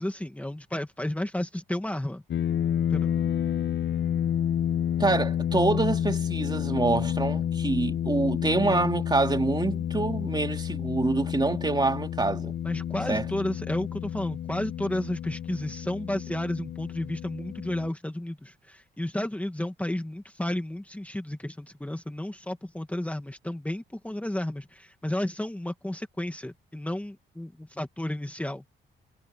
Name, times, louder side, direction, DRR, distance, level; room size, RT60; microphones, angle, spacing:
voice 1, 0.0-2.2 2.9-3.1 12.6-28.6, left 1 dB, 5° left, 2.2 m, -32 dB
sound 1, 2.3-17.9, left 9 dB, 60° left, 1.7 m, -30 dB
voice 2, 5.0-12.5 13.1-13.2, right 3 dB, 20° right, 3.1 m, -26 dB
cardioid pair, 90°, 20 cm